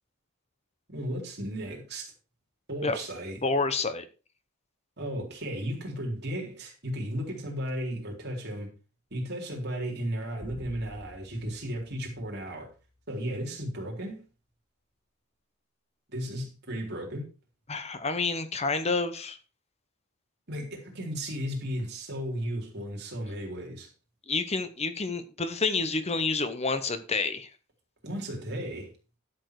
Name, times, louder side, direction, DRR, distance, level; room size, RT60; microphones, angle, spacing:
voice 1, 0.9-2.1 2.7-3.4 5.0-8.7 9.1-12.7 13.1-14.3 16.1-17.3 20.5-23.9 28.0-28.9, equal, 50° right, 3.9 m, -35 dB
voice 2, 3.4-4.1 17.7-19.4 24.3-27.5, left 3 dB, 30° left, 0.9 m, -29 dB
sound 1, 10.4-13.0, equal, 5° right, 2.3 m, -49 dB
12.0 x 7.2 x 4.8 m
head